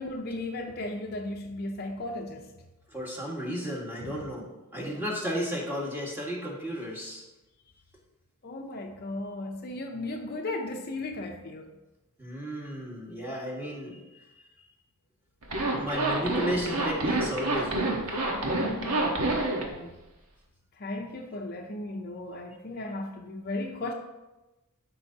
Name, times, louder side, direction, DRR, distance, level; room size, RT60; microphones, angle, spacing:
voice 1, 0.0-2.5 4.0-4.3 8.4-11.8 18.5-20.0 20.7-23.9, left 2 dB, 45° left, 3 dB, 0.6 m, -36 dB
voice 2, 2.9-7.2 12.2-14.3 15.7-18.2, equal, 10° right, -4 dB, 1.7 m, -34 dB
Zipper (clothing), 15.4-19.7, right 2 dB, 80° right, 1.3 m, -28 dB
12.5 x 5.4 x 2.8 m, 1.0 s
head